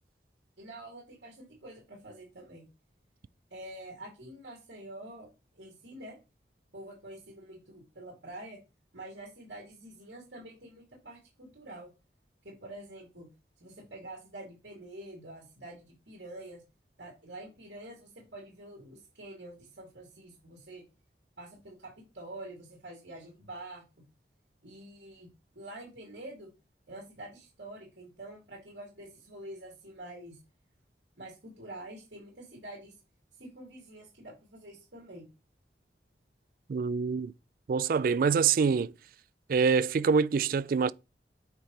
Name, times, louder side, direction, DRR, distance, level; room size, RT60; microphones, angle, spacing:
voice 1, 0.6-2.7 3.5-6.2 6.7-8.6 8.9-11.9 12.4-13.3 13.6-16.6 17.0-20.8 21.4-23.8 24.6-25.3 25.5-26.5 26.9-30.4 31.2-32.9 33.4-35.3, right 1 dB, 75° right, 2.9 m, -47 dB
voice 2, 36.7-37.3 37.7-38.9 39.5-40.9, right 5 dB, 50° right, 0.3 m, -25 dB
8.9 x 4.8 x 3.3 m
head